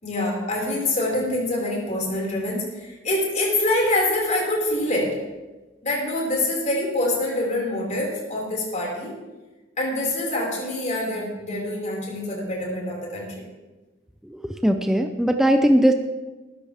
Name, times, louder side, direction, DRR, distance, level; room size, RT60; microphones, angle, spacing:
voice 1, 0.0-5.2 5.8-9.1 9.8-13.5, left 1 dB, 40° left, -3 dB, 5.4 m, -25 dB
voice 2, 14.2-15.9, equal, ahead, 5 dB, 0.6 m, -19 dB
20.0 x 14.0 x 3.6 m, 1.2 s
head